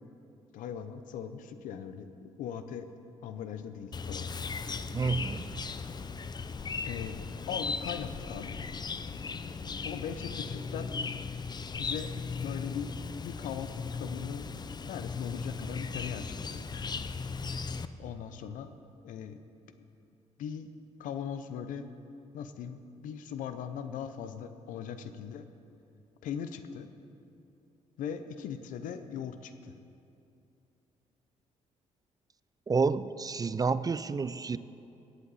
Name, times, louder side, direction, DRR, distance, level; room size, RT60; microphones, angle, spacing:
voice 1, 0.5-2.9 3.2-4.3 6.9-7.2 7.5-8.6 9.8-10.9 11.8-12.1 12.4-12.9 13.2-14.5 14.9-16.6 18.0-18.7 19.0-19.4 19.8-19.9 20.4-20.7 21.0-21.9 22.3-25.5 26.2-26.9 28.0-29.7, left 8 dB, 80° left, 10 dB, 0.6 m, -39 dB
Chirp tweet, 3.9-17.9, left 4 dB, 30° left, 0.5 m, -37 dB
voice 2, 4.9-5.4 32.7-34.6, right 4 dB, 30° right, 15 dB, 0.4 m, -29 dB
17.5 x 8.2 x 4.1 m, 2.6 s
supercardioid pair, 65°, 13 cm